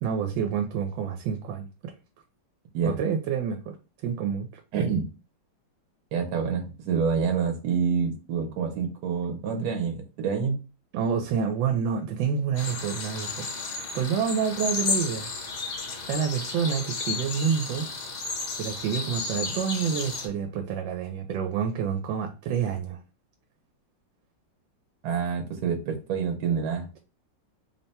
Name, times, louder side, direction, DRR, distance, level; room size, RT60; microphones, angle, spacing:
voice 1, 0.0-1.9 2.8-3.6 4.0-4.6 10.9-13.5 13.9-15.3 16.1-17.9 18.6-23.0, right 7 dB, 85° right, 4 dB, 1.3 m, -28 dB
voice 2, 4.7-5.1 6.1-10.6 25.0-26.9, right 6 dB, 65° right, 4 dB, 1.2 m, -27 dB
sound 1, 12.5-20.3, left 4 dB, 65° left, 1.6 m, -33 dB
3.4 x 2.2 x 4.0 m, 0.32 s
omnidirectional pair, 2.0 m